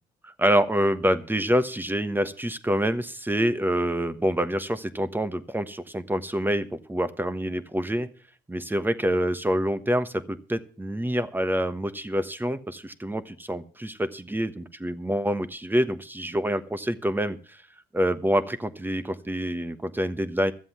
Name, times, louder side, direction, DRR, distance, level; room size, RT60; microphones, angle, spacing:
voice 1, 0.2-8.1 8.5-17.6 17.9-20.5, equal, 10° right, 11 dB, 1.2 m, -26 dB
13.5 x 7.6 x 7.3 m, 0.41 s
cardioid pair, 90°, 20 cm